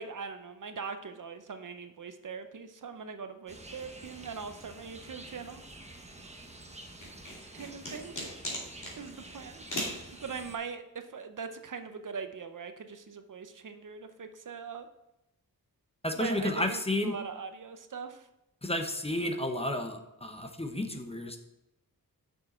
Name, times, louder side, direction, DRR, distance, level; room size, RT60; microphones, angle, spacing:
voice 1, 0.0-5.6 7.5-8.1 9.0-9.6 10.2-14.9 16.1-18.3, right 5 dB, 55° right, 8 dB, 0.6 m, -41 dB
sound 1, 3.5-10.6, right 2 dB, 20° right, 0.9 m, -49 dB
sound 2, 7.0-9.0 9.7-10.0, equal, 55° left, 2.5 m, -36 dB
voice 2, 16.0-17.2 18.6-21.4, left 1 dB, 15° left, 5 dB, 0.8 m, -32 dB
6.7 x 6.5 x 4.3 m, 0.91 s
wide cardioid pair, 95°, 37 cm